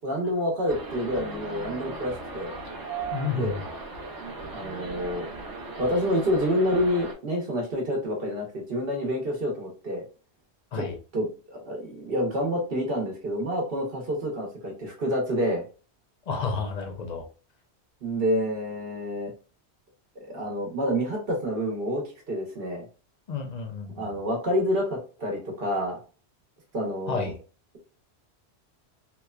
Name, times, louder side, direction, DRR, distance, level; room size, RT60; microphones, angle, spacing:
voice 1, 0.0-2.5 3.4-3.5 4.5-5.3 5.8-10.0 10.7-10.8 11.1-15.6 18.0-19.3 20.2-22.8 24.0-26.0 26.7-27.3, equal, 60° right, 0 dB, 0.9 m, -28 dB
sound 1, 0.7-7.1, right 3 dB, 35° right, 0.3 m, -37 dB
voice 2, 3.1-3.6 10.7-11.0 16.3-17.2 23.3-24.1 27.1-27.4, left 5 dB, 45° left, 3 dB, 0.6 m, -31 dB
2.9 x 2.1 x 2.2 m, 0.37 s
omnidirectional pair, 1.1 m